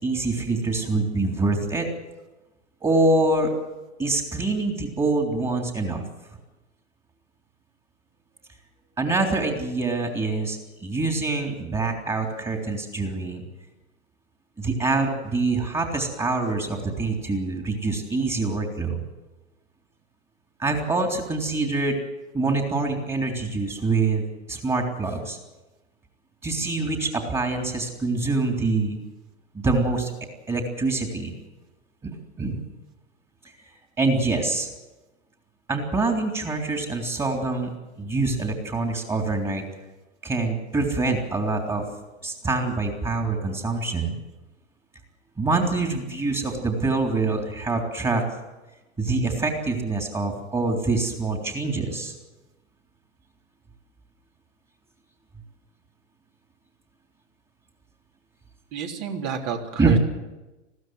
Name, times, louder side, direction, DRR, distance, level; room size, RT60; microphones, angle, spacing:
voice 1, 0.0-1.9 2.8-3.5 4.0-6.0 9.0-13.4 14.6-19.0 20.6-22.0 22.3-25.4 26.4-29.0 29.5-30.1 30.5-31.3 32.0-32.6 34.0-34.7 35.7-37.7 38.0-39.6 40.2-41.9 42.2-44.2 45.4-48.2 49.0-52.1 59.8-60.0, right 3 dB, 15° right, 3 dB, 3.3 m, -25 dB
voice 2, 58.7-60.0, right 6 dB, 45° right, 2 dB, 3.4 m, -30 dB
21.0 x 15.5 x 7.8 m, 1.1 s
hypercardioid pair, 105°, 36 cm